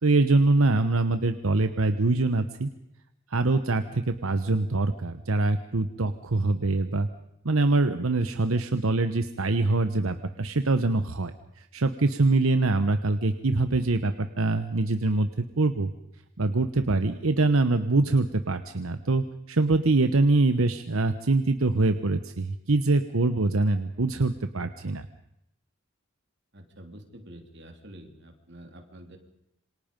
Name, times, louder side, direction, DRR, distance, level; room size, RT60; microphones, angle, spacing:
voice 1, 0.0-2.7 3.3-7.1 7.4-15.9 16.4-25.1, right 2 dB, 80° right, 9 dB, 1.0 m, -24 dB
voice 2, 26.5-29.2, right 1 dB, 55° right, 5 dB, 3.1 m, -47 dB
27.5 x 25.0 x 5.3 m, 0.80 s
head